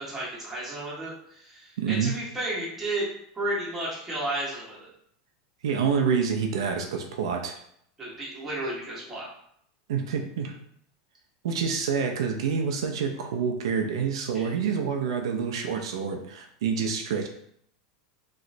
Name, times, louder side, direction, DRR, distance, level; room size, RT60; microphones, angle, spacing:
voice 1, 0.1-4.9 8.0-9.3 14.3-14.5, right 1 dB, 10° right, -8 dB, 1.3 m, -33 dB
voice 2, 1.8-2.1 5.6-7.5 9.9-10.5 11.4-17.3, right 6 dB, 90° right, 3 dB, 0.5 m, -27 dB
3.1 x 2.9 x 2.6 m, 0.68 s
supercardioid pair, 150°, 3 cm